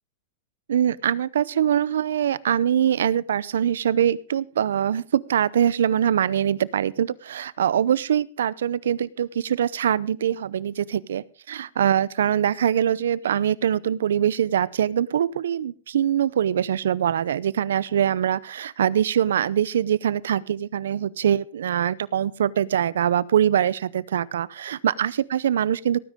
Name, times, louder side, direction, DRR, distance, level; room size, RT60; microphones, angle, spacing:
voice 1, 0.7-26.0, right 9 dB, 80° right, 21 dB, 0.7 m, -23 dB
18.0 x 10.0 x 3.6 m, 0.38 s
hypercardioid pair, 120°, 0 cm